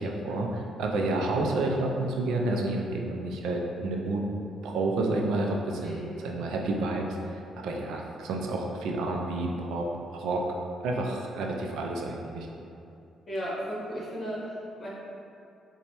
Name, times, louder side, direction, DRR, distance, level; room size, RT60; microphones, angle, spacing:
voice 1, 0.0-4.2 4.6-9.9 10.1-10.4 10.8-12.5, right 2 dB, 85° right, 0 dB, 0.4 m, -30 dB
voice 2, 13.3-14.9, equal, 35° left, -7 dB, 1.2 m, -35 dB
3.9 x 2.2 x 3.0 m, 2.6 s
cardioid pair, 90°, 0 cm